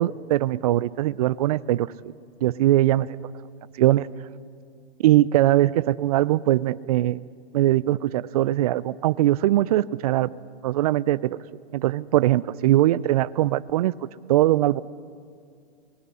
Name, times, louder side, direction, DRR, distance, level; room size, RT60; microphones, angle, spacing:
voice 1, 0.0-2.1 2.4-3.1 3.8-4.1 5.0-7.2 7.5-10.3 10.6-11.4 11.7-13.9 14.3-14.8, right 14 dB, 35° right, 19 dB, 0.4 m, -21 dB
25.0 x 19.5 x 5.5 m, 2.3 s
hypercardioid pair, 130°, 33 cm